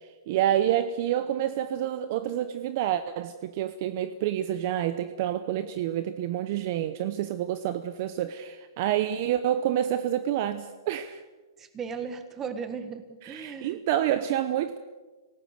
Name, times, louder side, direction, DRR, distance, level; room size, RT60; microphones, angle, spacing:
voice 1, 0.3-11.2 13.2-14.8, right 11 dB, 35° right, 11 dB, 0.8 m, -28 dB
voice 2, 11.6-13.8, right 6 dB, 15° right, 9 dB, 1.6 m, -36 dB
27.0 x 18.0 x 6.6 m, 1.3 s
hypercardioid pair, 165°, 2 cm